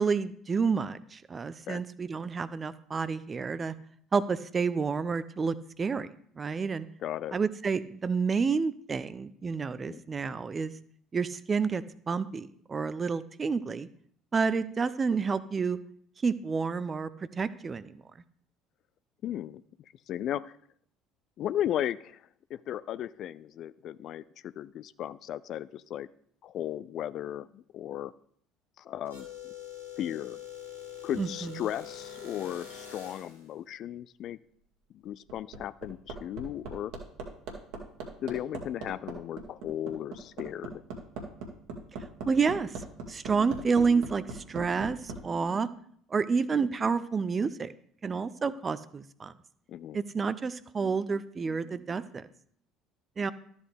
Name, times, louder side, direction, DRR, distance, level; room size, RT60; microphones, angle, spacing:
voice 1, 0.0-3.7 4.1-6.1 6.4-6.9 7.3-10.7 11.1-13.9 14.3-15.8 16.2-17.1 17.4-18.0 31.2-31.5 42.3-42.7 43.1-45.7 46.1-47.7 48.0-49.3 49.9-52.2 53.2-53.3, right 5 dB, 30° right, 16 dB, 0.6 m, -29 dB
voice 2, 7.0-7.4 9.8-10.0 19.2-19.6 20.1-20.5 21.4-26.1 26.4-28.1 28.8-29.3 30.0-30.4 31.0-34.4 34.9-36.9 38.2-40.8 49.7-50.0, left 11 dB, 50° left, 17 dB, 0.3 m, -36 dB
sound 1, 29.1-33.5, left 9 dB, 90° left, 1.4 m, -44 dB
Hammer, 35.0-45.2 46.5-46.6, right 3 dB, 65° right, 1.8 m, -39 dB
12.5 x 8.0 x 3.4 m, 0.63 s
figure-of-eight pair, 60°, 0 cm